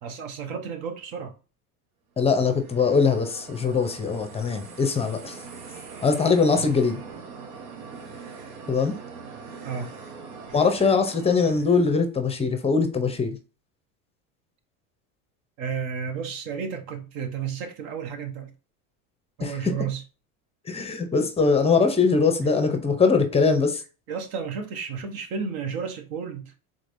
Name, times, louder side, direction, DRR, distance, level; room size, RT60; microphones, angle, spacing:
voice 1, 0.0-1.3 6.5-6.7 9.6-9.9 15.6-18.5 19.4-20.0 24.1-26.5, right 6 dB, 55° right, 1.1 m, -32 dB
voice 2, 2.2-5.4 6.0-7.0 8.7-9.0 10.5-13.4 19.4-19.7 20.7-23.8, left 5 dB, 15° left, 0.6 m, -22 dB
sound 1, 2.3-12.0, right 5 dB, 80° right, 1.1 m, -42 dB
4.0 x 3.2 x 2.6 m
supercardioid pair, 110°, 42 cm